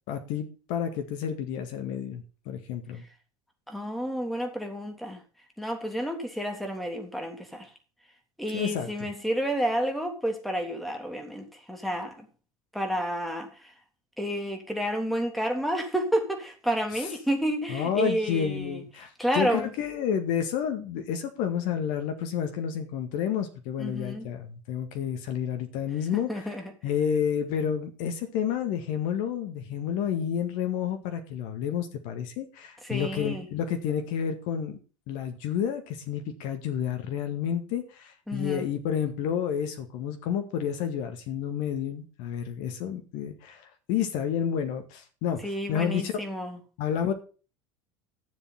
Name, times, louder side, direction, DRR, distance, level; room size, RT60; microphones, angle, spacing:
voice 1, 0.1-3.0 8.5-8.9 17.7-26.5 26.8-34.8 35.1-45.4 45.7-46.1 46.8-47.1, left 8 dB, 55° left, 1.9 m, -30 dB
voice 2, 3.7-5.2 5.6-7.7 8.4-12.3 12.7-13.7 14.2-18.8 19.2-19.7 23.8-24.3 26.1-26.7 32.8-33.5 38.3-38.7 45.4-46.6, equal, ahead, 3.4 m, -30 dB
13.5 x 7.3 x 5.7 m
figure-of-eight pair, 70°, 17 cm